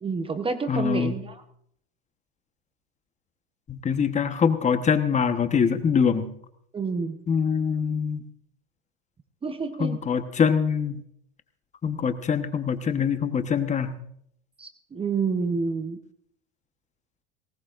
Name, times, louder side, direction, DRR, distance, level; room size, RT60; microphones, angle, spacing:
voice 1, 0.0-1.4 6.7-7.2 9.4-10.0 14.6-16.0, right 4 dB, 15° right, 9 dB, 0.9 m, -29 dB
voice 2, 0.7-1.2 3.7-6.3 7.3-8.2 9.8-11.0 11.8-13.9, left 6 dB, 25° left, 9 dB, 1.1 m, -24 dB
19.0 x 18.5 x 2.5 m, 0.69 s
supercardioid pair, 110°, 31 cm